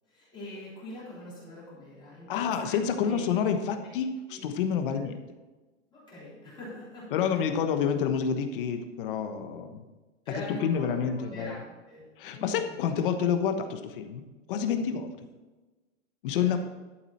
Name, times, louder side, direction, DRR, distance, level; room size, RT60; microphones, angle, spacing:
voice 1, 0.1-3.2 3.7-3.8 4.3-4.4 4.9-5.0 5.9-7.5 10.2-12.8 14.8-15.0 16.3-16.6, left 1 dB, 15° left, -9 dB, 3.7 m, -44 dB
voice 2, 2.3-5.1 7.1-9.8 10.6-11.5 12.2-14.2 14.5-15.1 16.2-16.6, left 7 dB, 50° left, 7 dB, 1.2 m, -28 dB
12.0 x 7.5 x 4.3 m, 1.2 s
supercardioid pair, 170°, 35 cm